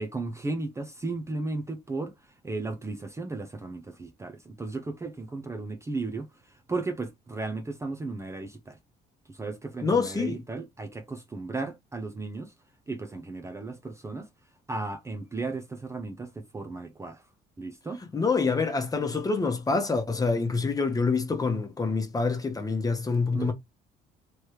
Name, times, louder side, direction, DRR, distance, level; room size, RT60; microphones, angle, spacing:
voice 1, 0.0-8.8 9.3-12.5 12.9-14.3 14.7-17.3 17.6-18.0 23.3-23.5, right 3 dB, 15° right, 0.6 m, -35 dB
voice 2, 9.8-10.4 18.1-23.5, left 4 dB, 20° left, 1.1 m, -26 dB
3.2 x 3.1 x 4.6 m
cardioid pair, 110°, 17 cm